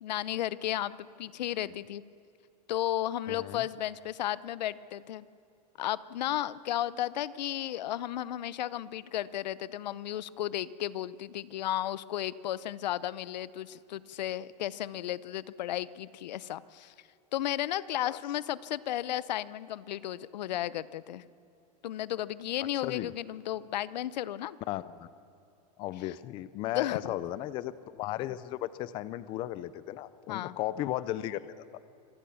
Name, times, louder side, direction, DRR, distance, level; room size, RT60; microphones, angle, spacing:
voice 1, 0.0-2.0 2.7-5.2 5.8-16.9 17.3-21.2 21.8-24.6 26.7-27.2 30.3-30.6, left 12 dB, 85° left, 18 dB, 0.8 m, -34 dB
voice 2, 3.3-3.6 18.0-18.2 22.8-23.1 24.7-25.1 25.8-31.4, left 14 dB, 25° left, 16 dB, 0.5 m, -35 dB
26.0 x 17.5 x 7.1 m, 2.6 s
supercardioid pair, 165°, 21 cm